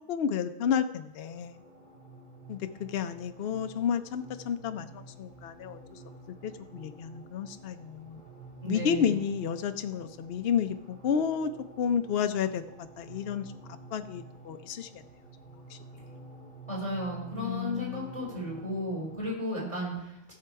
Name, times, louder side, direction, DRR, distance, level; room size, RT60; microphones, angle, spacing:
voice 1, 0.1-1.6 2.5-6.0 6.3-8.2 8.7-11.5 11.8-12.6 13.0-13.4 13.9-15.0 15.7-16.0 17.4-18.1, left 7 dB, 60° left, 8 dB, 0.8 m, -31 dB
sound 1, 1.2-19.2, right 2 dB, 40° right, 2.4 m, -50 dB
voice 2, 8.6-9.2 16.7-20.3, equal, 25° right, -4 dB, 4.5 m, -34 dB
14.5 x 6.8 x 4.6 m, 0.89 s
omnidirectional pair, 1.2 m